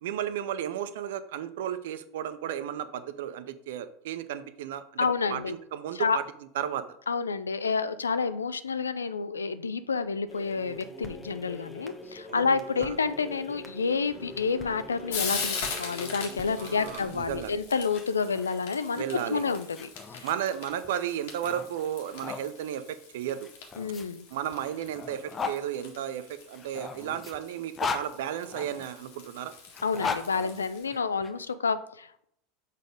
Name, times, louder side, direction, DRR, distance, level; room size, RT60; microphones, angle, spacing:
voice 1, 0.0-4.8 5.3-6.2 6.5-6.8 12.3-12.4 12.8-12.9 16.6-17.6 19.0-19.4 20.2-23.5 24.3-29.5, right 10 dB, 65° right, 12 dB, 0.6 m, -34 dB
voice 2, 5.0-5.5 5.9-6.2 7.1-20.3 23.8-24.2 29.8-32.2, left 5 dB, 80° left, 13 dB, 0.4 m, -29 dB
sound 1, 10.3-18.2, left 1 dB, 10° left, 1.2 m, -44 dB
Frying (food), 13.9-30.8, left 5 dB, 65° left, 1.8 m, -41 dB
sound 2, 17.8-22.4 23.4-25.6 26.5-28.9 29.7-31.3, left 5 dB, 25° left, 0.8 m, -38 dB
6.5 x 4.1 x 5.0 m, 0.69 s
figure-of-eight pair, 80°, 0 cm